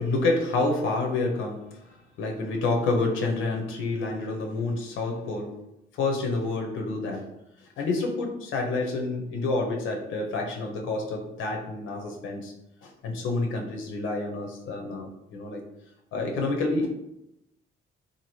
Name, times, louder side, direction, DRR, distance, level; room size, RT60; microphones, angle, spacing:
voice 1, 0.0-1.8 2.2-5.6 6.0-7.3 7.8-12.5 12.8-15.6 16.1-16.9, left 3 dB, 85° left, 1 dB, 0.6 m, -28 dB
2.8 x 2.5 x 3.0 m, 0.85 s
cardioid pair, 90°, 20 cm